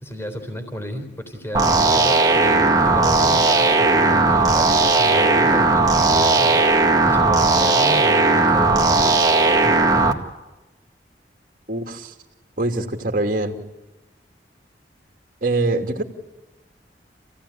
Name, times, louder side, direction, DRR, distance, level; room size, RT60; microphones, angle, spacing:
voice 1, 0.0-6.6 7.0-9.3 9.6-10.2, equal, 15° left, 5 dB, 3.8 m, -32 dB
sound 1, 1.5-10.1, right 3 dB, 20° right, 1.9 m, -17 dB
voice 2, 11.7-12.1 12.6-13.6 15.4-16.0, right 2 dB, 50° right, 4 dB, 2.6 m, -23 dB
28.5 x 17.0 x 10.0 m, 1.1 s
head